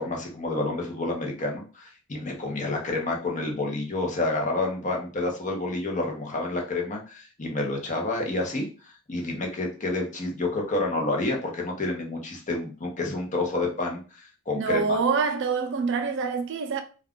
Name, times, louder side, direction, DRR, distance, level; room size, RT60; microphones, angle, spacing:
voice 1, 0.0-15.0, left 2 dB, 35° left, 0.8 m, -29 dB
voice 2, 14.5-16.8, right 5 dB, 55° right, 0.4 m, -26 dB
2.4 x 2.3 x 3.6 m
head